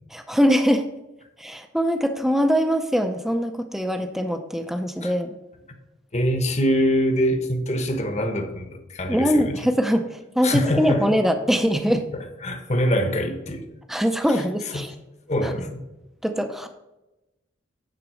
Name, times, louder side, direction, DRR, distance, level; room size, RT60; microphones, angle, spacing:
voice 1, 0.1-0.9 1.4-5.4 9.1-12.1 13.9-14.9 15.4-15.5 16.2-16.7, equal, ahead, 6 dB, 0.5 m, -22 dB
voice 2, 6.1-9.6 10.4-11.1 12.1-13.7 14.3-14.9 15.3-15.8, equal, 35° left, 6 dB, 1.0 m, -24 dB
9.2 x 4.0 x 6.3 m, 0.97 s
head